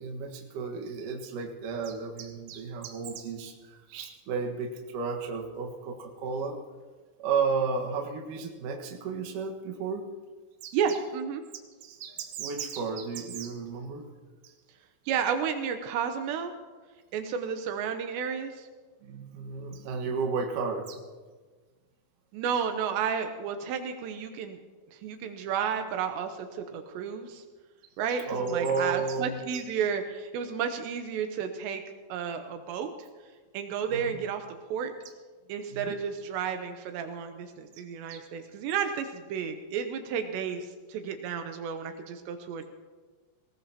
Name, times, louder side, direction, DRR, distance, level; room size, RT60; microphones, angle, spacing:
voice 1, 0.0-6.6 7.2-10.1 10.6-10.8 11.8-14.1 14.4-14.5 19.0-21.0 28.1-29.6 33.9-34.2 35.7-36.0 38.1-38.2, right 5 dB, 60° right, 2 dB, 2.5 m, -33 dB
voice 2, 10.7-11.4 15.1-16.5 17.1-18.7 22.3-24.6 24.9-27.4 28.0-31.8 32.1-33.1 33.5-34.4 34.7-34.9 35.5-42.6, right 7 dB, 85° right, 6 dB, 3.0 m, -32 dB
19.5 x 19.0 x 2.9 m, 1.4 s
omnidirectional pair, 5.1 m